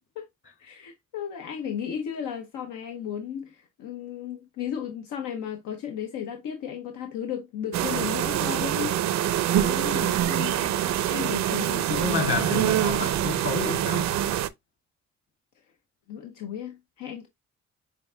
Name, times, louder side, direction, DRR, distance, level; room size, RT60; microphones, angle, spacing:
voice 1, 0.6-9.0 9.5-13.1 16.1-17.3, left 9 dB, 80° left, 0.7 m, -35 dB
sound 1, 7.7-14.5, right 12 dB, 65° right, 0.5 m, -25 dB
voice 2, 11.9-14.1, left 4 dB, 45° left, 2.1 m, -29 dB
6.7 x 2.5 x 2.2 m
cardioid pair, 90°, 30 cm